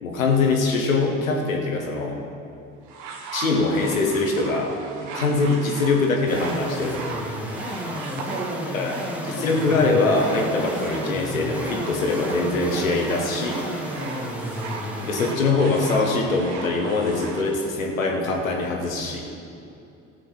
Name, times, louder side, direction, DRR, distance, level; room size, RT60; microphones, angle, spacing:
voice 1, 0.0-2.2 3.3-4.7 5.1-7.0 8.7-9.0 9.2-13.6 15.0-19.3, left 3 dB, 85° left, 1 dB, 1.4 m, -23 dB
sound 1, 2.9-17.5 18.3-18.4, right 4 dB, 65° right, 1.4 m, -37 dB
sound 2, 6.3-15.4, equal, 5° right, 1.6 m, -32 dB
voice 2, 8.3-8.8 13.9-14.6 19.7-19.8, right 4 dB, 25° right, 4 dB, 1.4 m, -37 dB
13.5 x 6.6 x 6.4 m, 2.6 s
hypercardioid pair, 60°, 39 cm